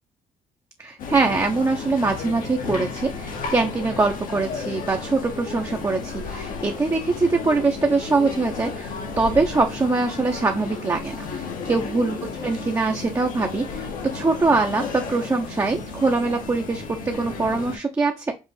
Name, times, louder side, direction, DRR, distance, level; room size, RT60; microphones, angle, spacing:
voice 1, 0.8-12.2 12.4-18.3, right 3 dB, 20° right, 2 dB, 0.7 m, -23 dB
sound 1, 1.0-17.8, left 4 dB, 75° left, 1.2 m, -33 dB
5.3 x 2.5 x 3.3 m, 0.27 s
cardioid pair, 95°, 14 cm